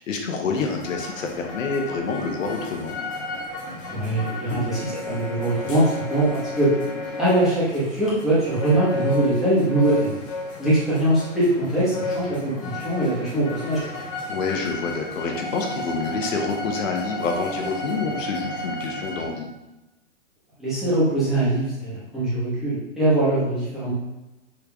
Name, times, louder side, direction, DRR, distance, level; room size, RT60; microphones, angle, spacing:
voice 1, 0.0-3.0 4.5-4.7 14.3-19.5, left 4 dB, 80° left, 3 dB, 0.8 m, -27 dB
sound 1, 0.5-19.3, left 2 dB, 25° left, 0.4 m, -33 dB
voice 2, 3.9-6.7 7.2-10.2 10.6-14.0 20.6-23.9, right 1 dB, ahead, -11 dB, 1.0 m, -22 dB
3.7 x 3.2 x 2.3 m, 1.0 s
hypercardioid pair, 145°, 38 cm